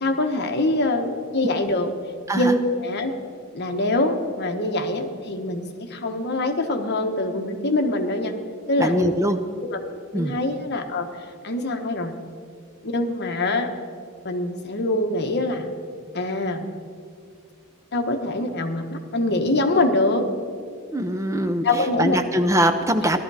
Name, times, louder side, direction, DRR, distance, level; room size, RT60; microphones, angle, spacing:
voice 1, 0.0-1.9 2.3-3.1 3.5-8.3 8.7-9.2 9.6-9.8 10.1-11.1 11.4-12.1 12.8-13.7 14.2-15.7 16.1-16.7 17.9-20.3 21.6-22.2, left 2 dB, 50° left, 5 dB, 1.1 m, -24 dB
voice 2, 8.8-9.4 10.1-10.3 20.9-23.2, right 1 dB, 15° right, 8 dB, 0.5 m, -22 dB
16.0 x 12.5 x 4.8 m, 2.3 s
head